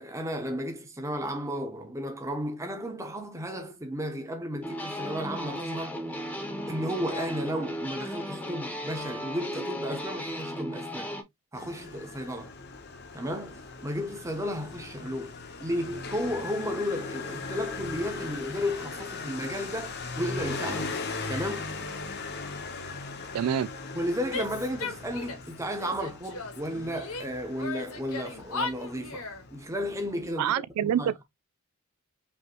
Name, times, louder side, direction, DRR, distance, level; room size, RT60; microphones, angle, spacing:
voice 1, 0.0-6.0 6.7-11.1 11.5-12.5 13.1-15.3 15.6-21.0 21.3-21.7 23.9-29.2 29.5-30.5 30.8-31.1, equal, 15° right, 0.9 m, -33 dB
sound 1, 4.6-11.2, equal, 5° left, 0.9 m, -35 dB
Motorcycle, 11.5-30.3, left 4 dB, 50° left, 0.9 m, -39 dB
voice 2, 23.3-23.7 30.4-31.2, right 9 dB, 90° right, 0.3 m, -26 dB
Female speech woman speaking / Yell, 24.3-25.5 25.8-27.3 27.6-29.4, left 3 dB, 70° left, 1.3 m, -36 dB
5.4 x 2.9 x 3.0 m
head